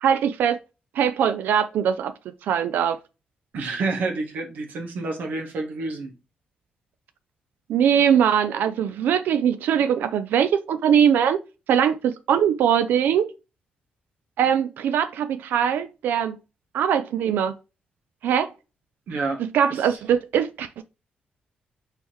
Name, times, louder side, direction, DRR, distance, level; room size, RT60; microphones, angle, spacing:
voice 1, 0.0-0.6 0.9-2.1 2.4-3.0 7.7-11.4 11.7-13.3 14.4-16.4 16.7-17.5 18.2-18.5 19.4-20.8, right 8 dB, 80° right, 0.3 m, -21 dB
voice 2, 3.5-6.1 19.1-19.4 19.7-20.0, right 3 dB, 65° right, 1.0 m, -29 dB
4.4 x 3.4 x 3.0 m
wide cardioid pair, 175°, 3 cm